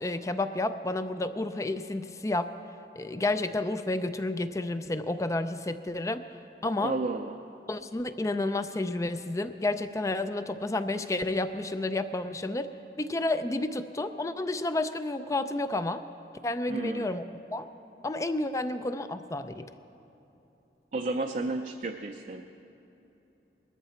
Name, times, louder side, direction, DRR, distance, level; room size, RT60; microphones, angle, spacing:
voice 1, 0.0-2.5 3.0-6.2 6.6-6.9 7.7-12.7 13.0-16.0 16.4-17.2 17.5-17.7 18.0-19.7, left 2 dB, 20° left, 11 dB, 0.4 m, -30 dB
voice 2, 6.8-7.3 16.7-17.1 20.9-22.4, right 2 dB, 45° right, 4 dB, 0.5 m, -32 dB
20.0 x 13.5 x 4.3 m, 3.0 s
head